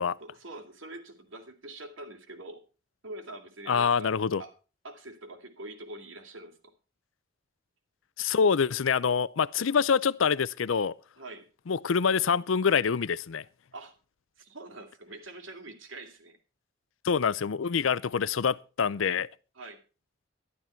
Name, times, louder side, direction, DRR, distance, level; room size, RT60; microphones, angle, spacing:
voice 1, 0.2-2.6 3.0-4.1 4.4-4.5 4.8-6.7 11.2-11.5 13.7-13.9 14.4-16.4 19.6-19.8, right 2 dB, 80° right, 2.6 m, -44 dB
voice 2, 3.7-4.4 8.2-10.9 11.7-13.4 17.0-19.3, left 6 dB, 85° left, 0.5 m, -26 dB
12.5 x 12.0 x 4.4 m
head